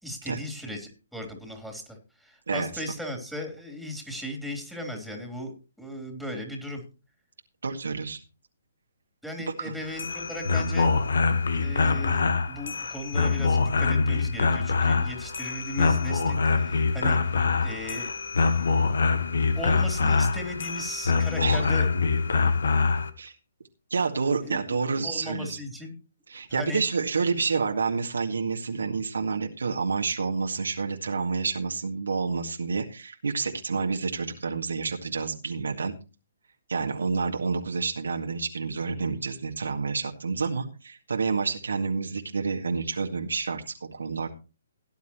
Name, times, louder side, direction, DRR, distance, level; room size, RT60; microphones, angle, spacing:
voice 1, 0.0-6.8 9.2-10.9 11.5-18.1 19.5-21.9 24.4-24.8 25.0-25.9 26.5-26.8, left 1 dB, ahead, 2 dB, 3.4 m, -37 dB
voice 2, 7.6-8.2 9.6-9.7 21.4-21.7 23.2-23.3 23.9-25.6 26.3-35.9 36.7-44.3, right 4 dB, 70° right, 3 dB, 2.0 m, -29 dB
sound 1, 9.8-23.1, left 4 dB, 65° left, 1.3 m, -24 dB
17.5 x 10.5 x 3.0 m, 0.32 s
figure-of-eight pair, 130°, 0 cm